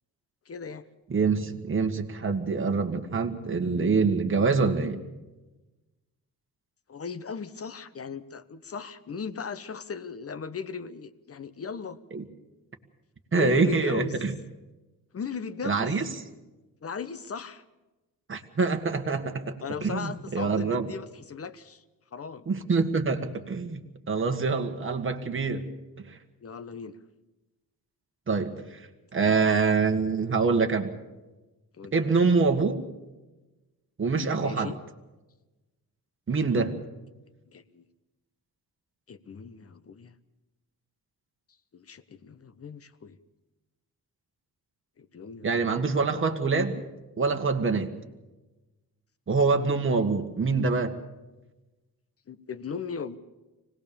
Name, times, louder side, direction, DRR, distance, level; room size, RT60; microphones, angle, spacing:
voice 1, 0.5-0.8 6.9-12.0 13.3-14.2 15.1-16.0 16.8-17.6 19.6-21.8 22.1-22.5 26.4-27.0 31.8-31.9 34.4-34.8 37.5-37.8 39.1-40.1 41.7-43.2 45.0-45.7 52.3-53.2, left 6 dB, 40° left, 13 dB, 1.1 m, -37 dB
voice 2, 1.1-5.0 12.1-12.2 13.3-14.4 15.6-16.1 18.3-20.9 22.5-23.8 24.1-25.7 26.0-26.2 28.3-28.8 29.1-30.9 31.9-32.9 34.0-34.7 36.3-36.8 45.4-46.8 47.2-48.0 49.3-51.0, right 4 dB, 35° right, 4 dB, 1.8 m, -25 dB
25.0 x 18.5 x 7.1 m, 1.1 s
cardioid pair, 110°, 36 cm